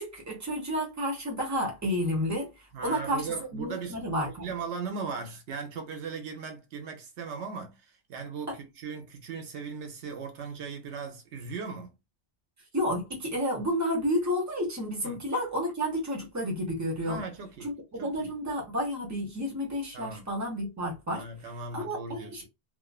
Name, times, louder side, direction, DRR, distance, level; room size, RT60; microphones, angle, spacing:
voice 1, 0.0-2.5 2.8-3.3 3.5-4.4 12.7-17.2 17.6-21.2 21.7-22.4, equal, 15° right, 0.9 m, -31 dB
voice 2, 2.7-4.1 4.4-11.9 15.0-15.2 17.1-17.7 18.0-18.3 19.9-20.3 21.1-22.4, right 5 dB, 85° right, 1.0 m, -38 dB
2.4 x 2.4 x 2.3 m
omnidirectional pair, 1.1 m